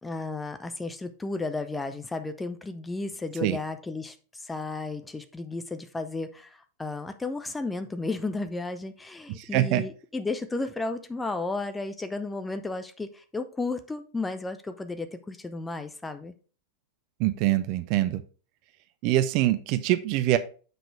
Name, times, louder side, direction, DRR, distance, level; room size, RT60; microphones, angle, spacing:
voice 1, 0.0-16.3, left 3 dB, 10° left, 9 dB, 0.6 m, -33 dB
voice 2, 9.4-9.8 17.2-18.2 19.0-20.4, right 14 dB, 45° right, 12 dB, 0.6 m, -24 dB
6.7 x 3.9 x 4.6 m, 0.38 s
figure-of-eight pair, 90°, 0 cm